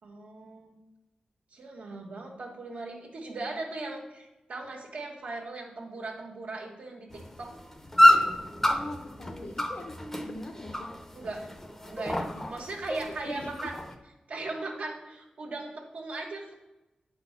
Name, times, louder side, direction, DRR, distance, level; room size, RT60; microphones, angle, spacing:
voice 1, 0.0-0.7 1.5-7.5 11.1-11.5 11.9-13.8 14.3-16.5, right 2 dB, 85° right, -2 dB, 1.4 m, -38 dB
sound 1, 7.1-13.9, left 1 dB, 15° left, 0.6 m, -27 dB
voice 2, 8.7-9.9 10.3-10.9 12.3-12.4 13.0-13.7, left 2 dB, 60° left, 1 dB, 0.8 m, -41 dB
9.2 x 4.0 x 5.7 m, 1.0 s
wide cardioid pair, 145°, 3 cm